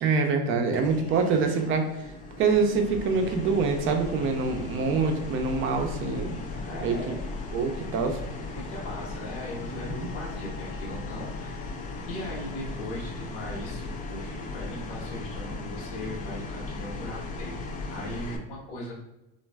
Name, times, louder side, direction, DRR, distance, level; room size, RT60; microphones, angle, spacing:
voice 1, 0.0-1.9 2.4-6.4 6.8-7.2 7.5-8.2 9.7-10.1, right 4 dB, 40° right, 4 dB, 0.5 m, -25 dB
sound 1, 0.7-18.4, left 3 dB, 25° left, 0.3 m, -37 dB
voice 2, 6.5-7.2 8.5-17.6 17.9-18.9, left 1 dB, 75° left, -4 dB, 1.1 m, -39 dB
3.1 x 2.5 x 2.2 m, 0.95 s
supercardioid pair, 115°, 31 cm